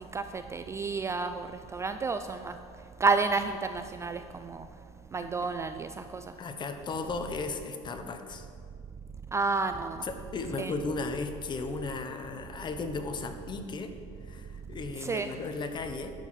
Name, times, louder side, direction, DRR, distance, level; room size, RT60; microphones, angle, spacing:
voice 1, 0.0-2.6 3.0-4.7 5.1-6.2 9.3-10.0 10.6-10.7 15.0-15.3, right 4 dB, 20° right, 8 dB, 0.3 m, -30 dB
voice 2, 6.4-8.5 10.0-13.9 14.3-16.1, left 3 dB, 30° left, 7 dB, 0.9 m, -35 dB
10.5 x 4.6 x 7.4 m, 2.2 s
supercardioid pair, 115°, 16 cm